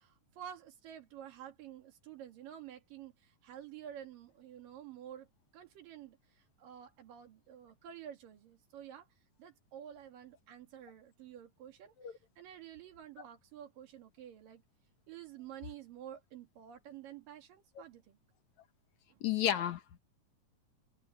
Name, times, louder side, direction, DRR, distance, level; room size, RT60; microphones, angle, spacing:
voice 1, 0.0-5.3 5.5-9.1 9.4-14.6 15.1-18.2 19.1-19.2, right 10 dB, 85° right, 3.9 m, -50 dB
voice 2, 19.2-20.0, left 10 dB, 65° left, 2.4 m, -32 dB
omnidirectional pair, 3.8 m